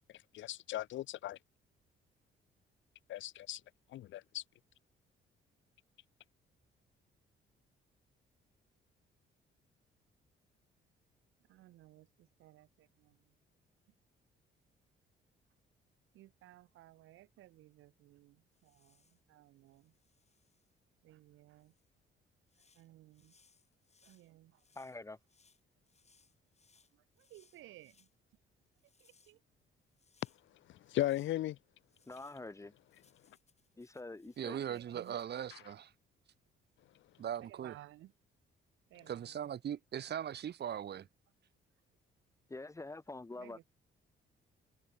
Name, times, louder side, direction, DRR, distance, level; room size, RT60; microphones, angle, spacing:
voice 1, 0.3-1.4 3.1-3.6 3.9-4.4 30.9-31.6, left 14 dB, 75° left, 0.7 m, -36 dB
voice 2, 11.5-13.4 16.1-19.9 21.0-21.7 22.6-23.4 24.0-24.6 26.9-28.1 29.0-29.4 34.4-35.2 37.4-38.1 38.9-39.5 43.3-43.6, right 15 dB, 85° right, 1.9 m, -58 dB
sound 1, 18.5-19.2 19.7-20.8 21.6-21.9 22.5-28.1 28.7-30.5 30.8-31.4 31.9-35.2, left 5 dB, 35° left, 5.6 m, -71 dB
voice 3, 24.7-25.2 32.1-32.7 33.8-34.6 42.5-43.6, left 2 dB, 15° left, 1.0 m, -46 dB
voice 4, 34.4-35.9 37.2-37.7 39.1-41.1, right 9 dB, 55° right, 1.5 m, -39 dB
cardioid pair, 90°, 20 cm